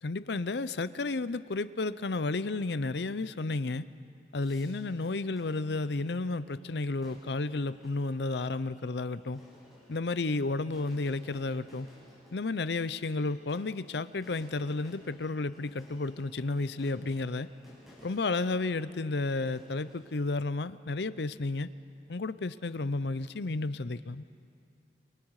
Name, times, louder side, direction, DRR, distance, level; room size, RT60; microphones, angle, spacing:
voice 1, 0.0-3.9 4.3-9.4 9.9-11.9 12.3-17.5 18.0-21.7 22.1-24.3, left 3 dB, 75° left, 15 dB, 0.7 m, -32 dB
sound 1, 4.4-20.2, equal, ahead, 7.5 m, -58 dB
28.5 x 27.0 x 4.9 m, 2.4 s
head